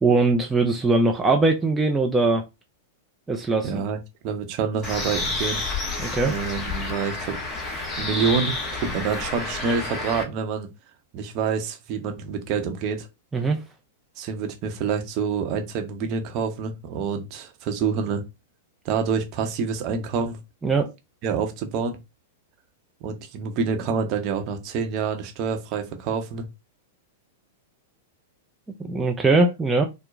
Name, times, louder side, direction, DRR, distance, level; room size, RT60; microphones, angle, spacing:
voice 1, 0.0-2.5 3.3-3.8 6.0-6.3 13.3-13.6 20.6-20.9 28.8-29.8, right 3 dB, 10° right, 0.4 m, -21 dB
voice 2, 3.6-4.0 4.2-5.6 6.2-7.4 7.7-10.7 11.1-13.1 14.2-18.3 18.8-20.4 21.2-22.0 23.0-26.5, right 5 dB, 40° right, 0.8 m, -27 dB
Bird, 4.8-10.2, left 3 dB, 25° left, 1.0 m, -30 dB
4.3 x 2.1 x 2.5 m
figure-of-eight pair, 100°, 0 cm